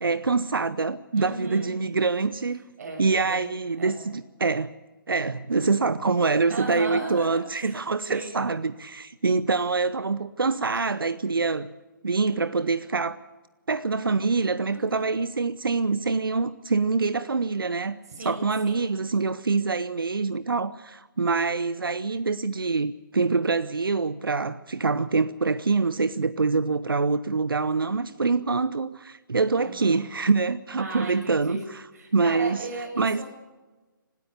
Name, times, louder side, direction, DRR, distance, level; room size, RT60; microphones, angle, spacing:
voice 1, 0.0-2.6 3.0-4.7 5.1-11.7 12.0-13.2 13.7-18.0 18.2-31.8 32.1-32.6 33.0-33.2, right 4 dB, 80° right, 0.8 m, -25 dB
voice 2, 1.2-1.7 2.8-3.4 3.8-4.0 6.5-7.3 7.5-7.8 8.1-8.3 14.6-15.1 18.1-18.8 29.6-30.0 30.8-31.6 31.9-33.2, right 2 dB, 45° right, 6.9 m, -36 dB
25.5 x 13.0 x 8.3 m
figure-of-eight pair, 145°, 12 cm